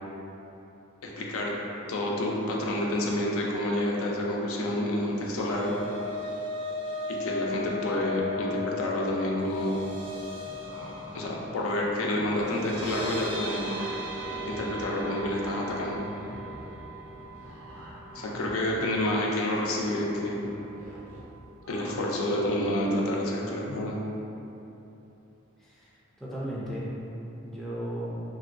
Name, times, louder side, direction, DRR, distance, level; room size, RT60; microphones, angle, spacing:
voice 1, 1.0-1.5 1.9-5.7 7.1-9.8 11.1-13.8 14.4-16.0 18.1-20.5 21.7-24.0, left 1 dB, 80° left, -2 dB, 0.5 m, -29 dB
sound 1, 5.0-19.2 19.6-19.8 20.1-20.2, left 2 dB, 55° right, 0.6 m, -38 dB
sound 2, 10.4-11.2 11.6-13.2 13.5-14.6 14.9-22.8, equal, 90° right, 0.8 m, -45 dB
voice 2, 25.6-26.9 27.4-28.2, equal, ahead, -8 dB, 0.4 m, -36 dB
3.0 x 2.7 x 2.6 m, 2.9 s
head